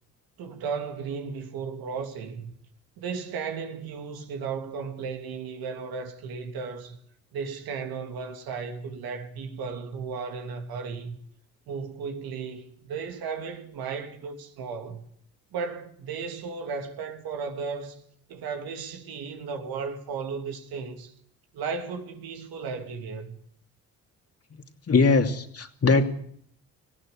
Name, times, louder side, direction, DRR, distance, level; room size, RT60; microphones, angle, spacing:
voice 1, 0.4-2.5 3.0-7.0 7.3-11.2 11.7-15.0 15.5-18.0 18.3-21.1 21.5-23.4, right 5 dB, 80° right, 3.0 m, -35 dB
voice 2, 24.9-26.1, left 4 dB, 40° left, 2.7 m, -21 dB
19.5 x 15.5 x 8.6 m
supercardioid pair, 70°, 36 cm